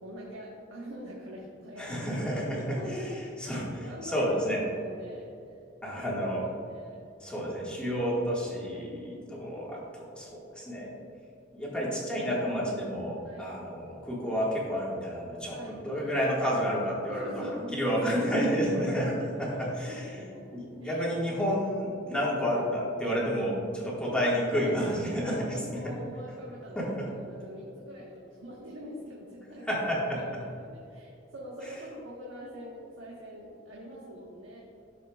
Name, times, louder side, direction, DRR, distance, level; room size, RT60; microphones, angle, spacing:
voice 1, 0.0-5.5 5.9-7.1 13.2-13.6 15.5-16.1 17.1-18.3 18.6-21.0 22.1-22.3 24.0-24.7 25.1-29.8 30.1-34.6, equal, 80° right, -4 dB, 1.3 m, -43 dB
voice 2, 1.8-4.6 5.8-6.4 7.2-11.0 11.5-19.1 19.4-20.2 20.5-25.9 26.7-27.1 29.6-30.4 31.6-31.7, equal, 5° left, -6 dB, 1.6 m, -30 dB
12.0 x 6.7 x 2.3 m, 2.7 s
head